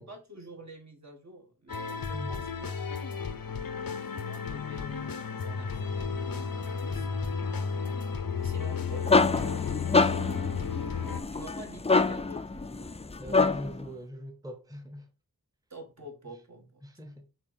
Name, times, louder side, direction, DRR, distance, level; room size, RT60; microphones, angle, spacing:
voice 1, 0.0-2.7 3.3-3.4 4.1-6.3 6.9-7.3 8.4-9.5 9.9-10.7 11.3-13.0 15.7-16.8, right 2 dB, 50° right, 1.8 m, -48 dB
sound 1, 1.7-11.2, left 6 dB, 85° left, 0.8 m, -33 dB
voice 2, 2.1-2.5 13.2-15.1 16.8-17.3, equal, 10° right, 1.0 m, -42 dB
sound 2, 8.6-13.8, left 3 dB, 20° left, 0.4 m, -26 dB
6.0 x 4.0 x 4.2 m
wide cardioid pair, 60°, 34 cm